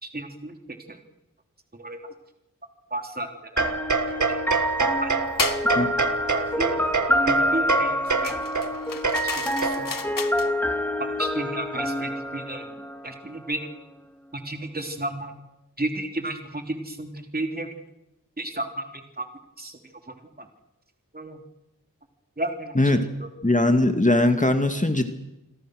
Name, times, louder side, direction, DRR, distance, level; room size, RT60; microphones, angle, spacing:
voice 1, 0.0-0.5 0.9-1.0 1.7-2.0 2.9-3.6 4.1-4.4 5.0-5.1 6.3-6.8 7.3-8.4 9.4-9.9 11.2-12.7 13.0-13.7 14.3-15.3 15.8-17.7 18.4-18.8 19.2-19.3 19.6-19.8 20.4-20.5 21.1-21.4 22.4-22.8 23.2-23.3, right 1 dB, 30° right, 4 dB, 3.2 m, -32 dB
sound 1, 3.6-13.4, equal, 5° left, 3.7 m, -27 dB
sound 2, 3.6-10.1, right 4 dB, 60° right, 1.7 m, -27 dB
sound 3, 5.4-5.7 8.2-10.5, left 6 dB, 80° left, 1.3 m, -32 dB
voice 2, 23.4-25.1, left 2 dB, 25° left, 7 dB, 2.1 m, -20 dB
29.0 x 21.5 x 6.5 m, 0.91 s
wide cardioid pair, 55°, 33 cm